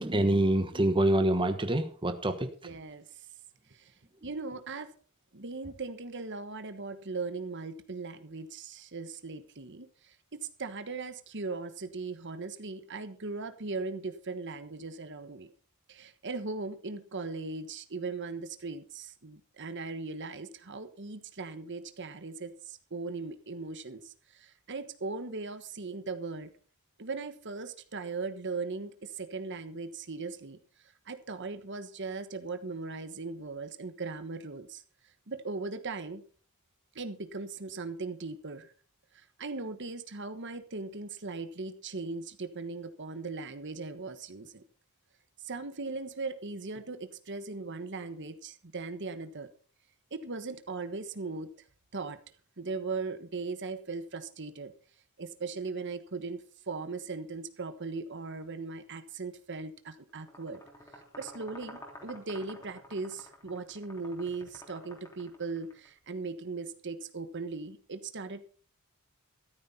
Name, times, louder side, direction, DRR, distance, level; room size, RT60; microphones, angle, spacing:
voice 1, 0.0-2.5, right 1 dB, 25° right, 8 dB, 1.2 m, -26 dB
voice 2, 2.6-3.0 3.7-3.9 4.2-4.9 5.3-15.5 15.9-26.5 27.0-30.6 31.1-34.8 35.3-36.2 36.9-38.7 39.1-44.6 45.4-49.5 50.1-51.5 51.9-52.2 52.6-54.7 55.2-60.6 61.2-68.4, right 3 dB, 55° right, 9 dB, 1.3 m, -38 dB
sound 1, 60.1-65.9, left 1 dB, 15° left, 3.2 m, -51 dB
14.0 x 13.0 x 4.3 m, 0.41 s
head